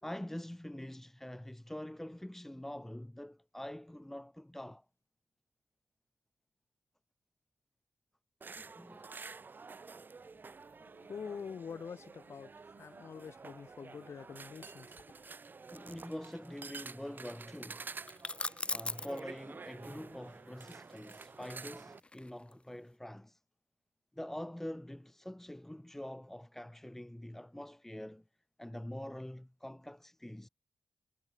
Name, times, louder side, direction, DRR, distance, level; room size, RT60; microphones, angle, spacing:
voice 1, 0.0-4.8 8.4-9.2 15.7-17.9 18.7-23.4 24.1-28.2 28.6-30.5, left 1 dB, 5° left, 2.2 m, -45 dB
sound 1, 8.4-22.0, right 4 dB, 40° right, 7.1 m, -50 dB
voice 2, 10.7-15.0, left 6 dB, 65° left, 6.6 m, -46 dB
sound 2, 18.1-19.2 21.0-22.6, left 2 dB, 20° left, 2.2 m, -39 dB
wide cardioid pair, 105°, 5 cm